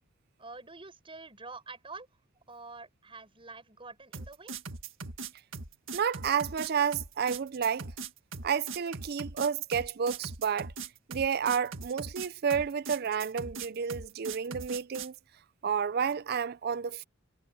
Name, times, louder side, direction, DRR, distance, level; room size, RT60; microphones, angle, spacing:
voice 1, 0.4-2.1 2.5-4.6, right 3 dB, 25° right, 5.7 m, -47 dB
sound 1, 4.1-15.2, right 4 dB, 70° right, 1.8 m, -40 dB
voice 2, 5.9-7.9 8.4-10.7 11.1-15.1 15.6-17.0, right 7 dB, 50° right, 0.4 m, -30 dB
head